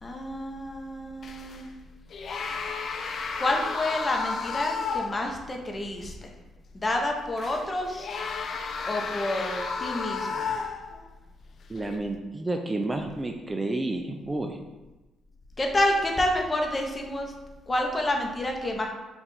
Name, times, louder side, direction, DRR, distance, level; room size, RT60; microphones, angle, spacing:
voice 1, 0.0-1.7 3.4-6.3 6.7-8.1 8.9-10.5 15.6-17.3 17.7-18.9, left 1 dB, 25° left, 2 dB, 0.7 m, -28 dB
sound 1, 1.2-1.7 2.1-5.3 5.7-5.8 7.4-11.1 11.8-12.0, left 5 dB, 55° left, 0.4 m, -33 dB
voice 2, 11.7-14.6, right 2 dB, 20° right, 4 dB, 0.4 m, -30 dB
4.4 x 2.5 x 4.2 m, 1.1 s
cardioid pair, 90°, 0 cm